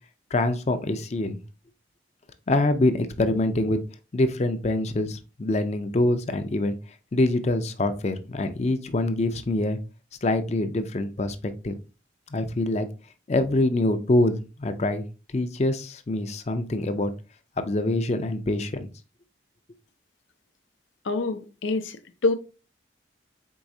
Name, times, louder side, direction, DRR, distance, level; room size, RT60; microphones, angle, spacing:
voice 1, 0.3-1.4 2.5-3.8 4.1-6.8 7.1-9.8 10.2-11.4 11.6-11.8 12.3-12.9 13.3-15.0 15.3-17.1 17.6-18.9, left 2 dB, 35° left, 0.5 m, -25 dB
voice 2, 21.1-22.3, left 3 dB, 90° left, 0.6 m, -26 dB
4.6 x 4.0 x 2.7 m
head